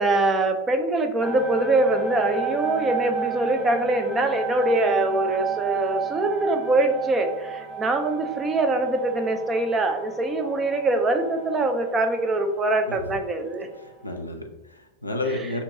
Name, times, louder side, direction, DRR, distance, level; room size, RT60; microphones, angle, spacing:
voice 1, 0.0-13.7, right 2 dB, 20° right, 6 dB, 0.4 m, -23 dB
sound 1, 1.2-12.6 13.0-13.1 13.3-14.1, right 6 dB, 30° left, 0.5 m, -32 dB
voice 2, 13.8-15.6, left 2 dB, 85° left, 4 dB, 0.4 m, -31 dB
2.7 x 2.2 x 3.7 m, 1.0 s
figure-of-eight pair, 90°, 0 cm